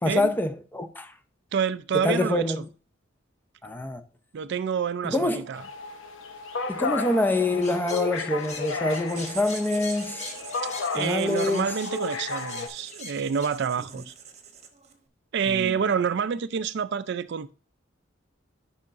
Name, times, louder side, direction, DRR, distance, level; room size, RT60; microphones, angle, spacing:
voice 1, 0.0-1.1 2.0-2.6 3.6-4.0 5.0-5.4 6.7-10.3 11.0-11.7 15.6-15.7, left 2 dB, 10° left, 0.6 m, -26 dB
voice 2, 1.5-2.6 4.3-5.6 10.9-14.1 15.3-17.5, right 7 dB, 60° right, 0.4 m, -28 dB
sound 1, 5.5-12.7, left 4 dB, 80° left, 0.9 m, -33 dB
sound 2, 7.6-13.5, left 4 dB, 35° left, 1.1 m, -42 dB
Writing, 9.1-15.0, right 7 dB, 35° right, 1.1 m, -44 dB
10.5 x 5.6 x 2.5 m
head